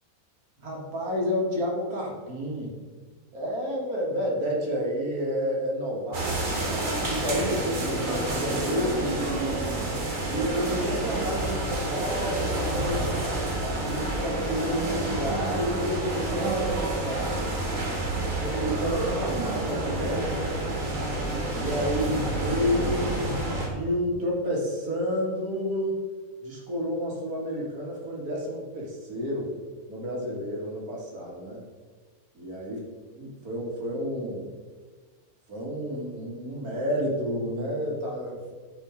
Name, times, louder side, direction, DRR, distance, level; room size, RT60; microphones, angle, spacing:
voice 1, 0.6-2.7 3.3-6.6 7.1-9.8 10.3-13.1 13.6-17.6 18.4-20.6 21.5-26.0 26.4-29.5 29.9-31.6 32.3-32.8 33.2-34.5 35.5-38.4, equal, 85° right, -2 dB, 2.3 m, -30 dB
sound 1, 6.1-23.7, right 2 dB, 65° right, 2.1 m, -29 dB
9.2 x 5.0 x 5.0 m, 1.5 s
omnidirectional pair, 1.5 m